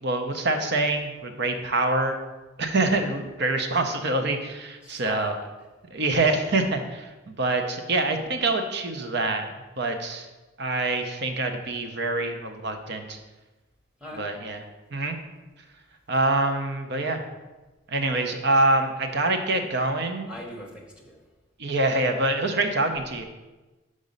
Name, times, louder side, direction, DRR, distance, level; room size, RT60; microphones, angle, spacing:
voice 1, 0.0-2.2 2.6-5.4 5.9-9.5 9.8-10.3 10.6-13.2 14.1-14.6 14.9-15.2 16.1-17.2 17.9-20.3 21.6-23.2, right 2 dB, 50° right, 6 dB, 0.7 m, -25 dB
voice 2, 4.8-5.3 14.0-14.2 20.3-21.2, equal, 5° right, -1 dB, 1.0 m, -40 dB
5.3 x 4.9 x 5.3 m, 1.2 s
head